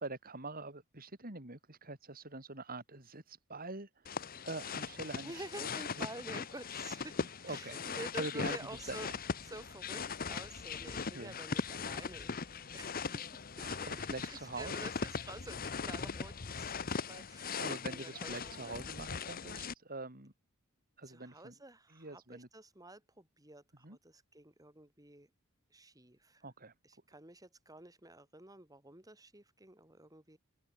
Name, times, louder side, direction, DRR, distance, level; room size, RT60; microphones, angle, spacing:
voice 1, 0.0-5.7 7.4-8.6 8.9-9.2 11.1-11.4 13.6-14.7 17.6-20.3 21.0-21.5 21.9-22.5 23.8-24.0 26.4-26.7, right 3 dB, 45° right, 4.7 m, -44 dB
sound 1, 4.1-19.7, left 5 dB, 45° left, 0.9 m, -40 dB
voice 2, 5.2-9.1 9.4-13.7 14.3-18.8 21.1-25.3 25.7-26.4 26.8-30.4, right 2 dB, 15° right, 5.4 m, -50 dB
open air
head